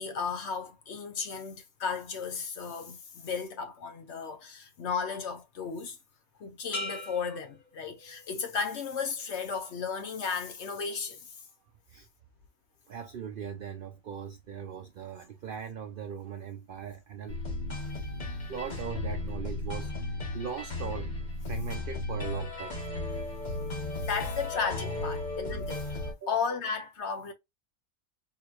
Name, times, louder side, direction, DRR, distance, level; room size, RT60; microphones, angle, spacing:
voice 1, 0.0-6.0 6.4-11.3 24.0-26.0 26.3-27.3, left 5 dB, 55° left, 0.9 m, -34 dB
sound 1, 6.7-8.5 9.0-9.5, left 2 dB, 90° left, 1.8 m, -41 dB
voice 2, 12.9-17.4 18.5-21.1 21.5-22.8 26.2-26.4, right 7 dB, 70° right, 0.5 m, -40 dB
sound 2, 17.3-26.1, left 2 dB, 35° left, 1.1 m, -35 dB
3.8 x 2.9 x 2.4 m
omnidirectional pair, 1.5 m